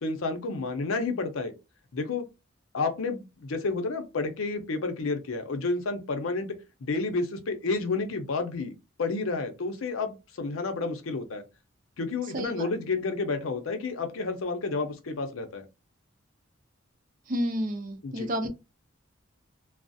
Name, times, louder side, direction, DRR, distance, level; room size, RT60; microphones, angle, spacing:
voice 1, 0.0-1.5 1.9-2.3 2.7-6.5 6.8-8.7 9.0-11.4 12.0-15.7 18.0-18.3, left 3 dB, 85° left, 0.6 m, -30 dB
voice 2, 12.3-12.7 17.3-18.5, equal, 40° right, 0.4 m, -30 dB
2.4 x 2.0 x 2.5 m
head